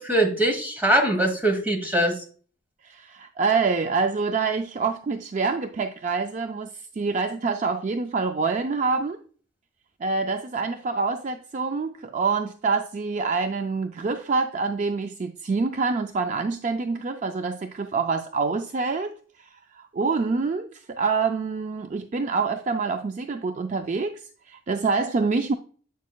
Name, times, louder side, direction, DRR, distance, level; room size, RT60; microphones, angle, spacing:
voice 1, 0.0-2.2, right 1 dB, 10° right, 3 dB, 1.2 m, -22 dB
voice 2, 2.8-9.2 10.0-19.1 19.7-24.2 24.5-25.5, right 4 dB, 35° right, 7 dB, 0.3 m, -26 dB
8.0 x 6.3 x 2.2 m, 0.42 s
head